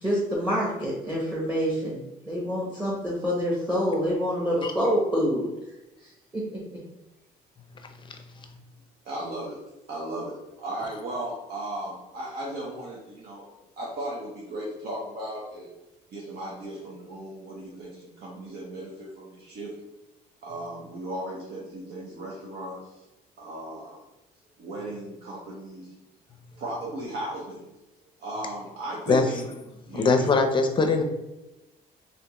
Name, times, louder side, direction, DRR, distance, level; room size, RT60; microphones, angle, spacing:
voice 1, 0.0-5.5 6.3-6.8, equal, 10° right, -4 dB, 0.9 m, -27 dB
voice 2, 9.0-9.6 9.9-15.7 16.1-19.7 20.4-23.0 23.4-24.0 24.6-25.9 26.6-27.7 28.2-29.5 29.9-30.3, right 1 dB, 70° right, -4 dB, 0.8 m, -36 dB
voice 3, 29.9-31.0, left 4 dB, 30° left, 5 dB, 0.5 m, -21 dB
3.4 x 2.8 x 2.9 m, 0.97 s
cardioid pair, 110°, 17 cm